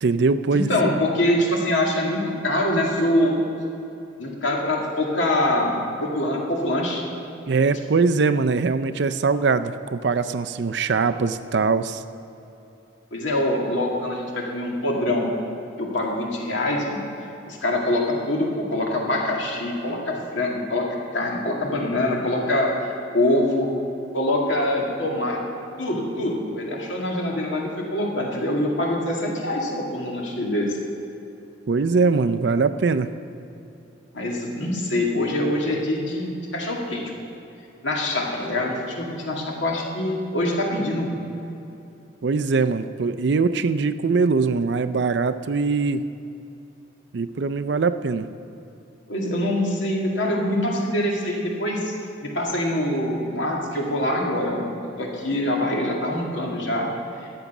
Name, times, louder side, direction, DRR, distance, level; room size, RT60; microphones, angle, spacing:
voice 1, 0.0-0.7 7.5-12.0 31.7-33.1 42.2-46.0 47.1-48.3, right 4 dB, 60° right, 11 dB, 0.4 m, -22 dB
voice 2, 0.5-3.4 4.2-7.0 13.1-15.3 15.8-17.0 17.5-20.9 21.1-22.7 23.1-23.7 24.1-25.4 25.8-30.7 34.1-37.1 37.8-41.2 49.1-51.9 52.2-56.9, left 1 dB, 75° left, -1 dB, 2.1 m, -24 dB
13.5 x 8.7 x 6.0 m, 2.8 s
head